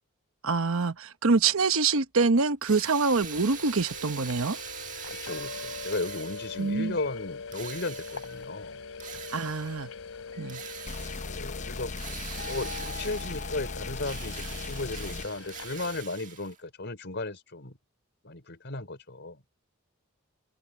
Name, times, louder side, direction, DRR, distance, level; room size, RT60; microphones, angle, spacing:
voice 1, 0.4-4.6 6.6-7.0 9.3-9.9 10.4-10.6, right 4 dB, 75° right, 1.0 m, -25 dB
Drill, 2.6-6.8 7.5-8.5 9.0-9.9 10.5-11.4 12.0-13.6 14.0-16.6, right 8 dB, 40° right, 1.7 m, -43 dB
sound 1, 3.1-16.0, left 4 dB, 75° left, 3.3 m, -42 dB
voice 2, 5.1-8.8 11.2-11.9 12.5-17.8 18.2-19.4, left 2 dB, 55° left, 4.2 m, -35 dB
sound 2, 10.9-15.3, left 3 dB, 35° left, 0.8 m, -37 dB
open air
head